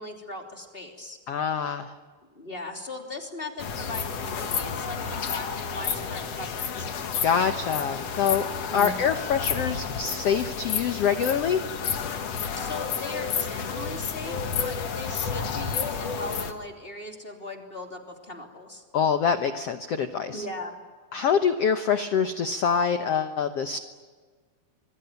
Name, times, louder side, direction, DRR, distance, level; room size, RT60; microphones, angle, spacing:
voice 1, 0.0-1.2 2.3-6.9 8.5-9.0 12.6-18.8 20.3-20.8, left 2 dB, 15° left, 2 dB, 2.9 m, -39 dB
voice 2, 1.3-1.9 7.2-8.5 8.7-11.6 18.9-20.4 21.1-23.8, left 7 dB, 75° left, 8 dB, 1.4 m, -25 dB
sound 1, 3.6-16.5, left 6 dB, 50° left, 2.3 m, -31 dB
26.0 x 22.5 x 9.3 m, 1.5 s
omnidirectional pair, 4.3 m